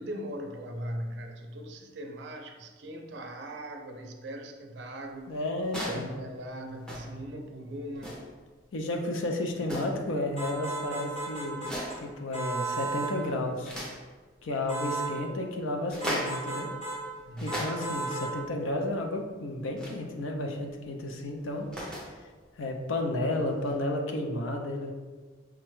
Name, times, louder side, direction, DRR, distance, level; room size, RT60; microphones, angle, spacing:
voice 1, 0.0-5.4 5.9-8.2 17.2-17.7, right 1 dB, 60° right, 4 dB, 0.4 m, -39 dB
voice 2, 5.3-6.1 8.7-13.8 14.4-16.7 17.4-21.7 22.6-24.9, left 1 dB, 80° left, 2 dB, 0.5 m, -32 dB
sound 1, 5.6-6.1 6.8-7.2 7.9-8.4 9.6-10.1 11.6-12.1 12.6-12.9 13.2-14.0 15.8-16.5 17.1-18.1 19.8-20.0 21.4-22.2 23.6-23.7, equal, 5° left, 0.5 m, -37 dB
sound 2, 10.4-12.0 12.3-13.2 14.7-15.1 16.0-17.0 17.5-18.3, right 2 dB, 35° left, 0.9 m, -34 dB
4.9 x 2.2 x 3.0 m, 1.4 s
head